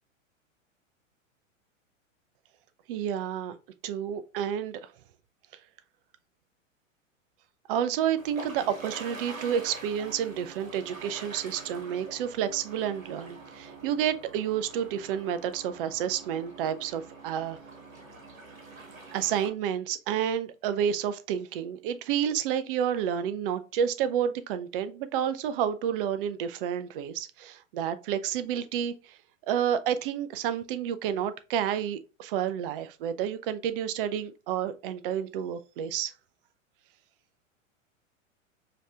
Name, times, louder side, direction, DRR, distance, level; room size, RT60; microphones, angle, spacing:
voice 1, 2.9-3.6 3.8-4.9 7.7-17.6 19.1-29.2 29.5-36.1, right 9 dB, 45° right, 0.5 m, -30 dB
sound 1, 8.2-19.5, right 3 dB, 85° right, 1.3 m, -45 dB
5.1 x 2.8 x 2.4 m
figure-of-eight pair, 100°, 40 cm